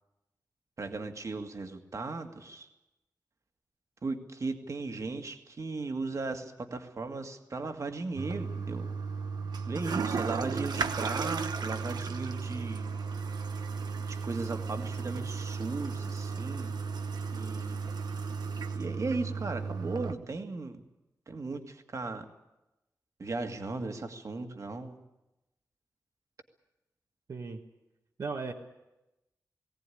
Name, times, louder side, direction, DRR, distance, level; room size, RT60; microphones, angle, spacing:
voice 1, 0.8-2.7 4.0-8.9 9.7-12.9 14.1-16.7 17.3-17.8 18.7-20.8 21.3-22.3 23.2-25.0, right 3 dB, 50° right, 6 dB, 1.9 m, -37 dB
Toilet flush, 8.2-20.1, right 5 dB, 85° right, 1.1 m, -34 dB
voice 2, 27.3-27.6 28.2-28.5, right 4 dB, 65° right, 1 dB, 1.4 m, -37 dB
19.5 x 17.5 x 9.9 m, 0.96 s
wide cardioid pair, 125°, 7 cm